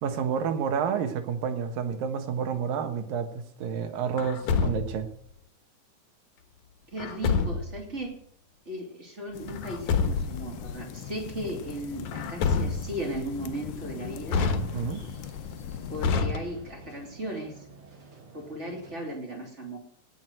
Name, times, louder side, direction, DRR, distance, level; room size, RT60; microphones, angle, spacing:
voice 1, 0.0-5.1 14.7-15.0, right 7 dB, 80° right, 7 dB, 3.2 m, -29 dB
Truck, 4.2-5.1 7.0-7.8 9.5-10.5 12.1-13.1 14.3-15.1 16.0-16.9, left 5 dB, 65° left, 2.4 m, -28 dB
voice 2, 6.9-8.1 8.6-14.5 15.9-17.7 18.3-19.8, right 1 dB, 20° right, 1 dB, 3.2 m, -36 dB
sound 1, 9.3-16.1, left 9 dB, 85° left, 2.6 m, -39 dB
sound 2, 10.1-19.0, right 3 dB, 40° right, 2.9 m, -50 dB
18.0 x 6.2 x 7.8 m, 0.67 s
omnidirectional pair, 4.0 m